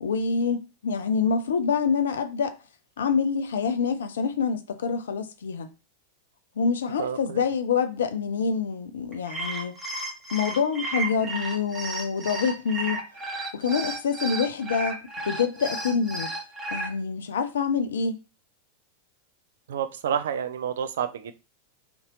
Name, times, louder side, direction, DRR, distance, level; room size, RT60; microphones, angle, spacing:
voice 1, 0.0-2.6 3.0-5.7 6.6-9.8 10.3-13.0 13.5-16.3 16.7-18.2, left 5 dB, 65° left, 0.4 m, -26 dB
voice 2, 7.0-7.4 19.7-21.3, right 8 dB, 60° right, 0.3 m, -29 dB
sound 1, 9.1-16.9, right 2 dB, 15° right, 1.1 m, -33 dB
2.6 x 2.6 x 3.0 m
figure-of-eight pair, 90°, 0 cm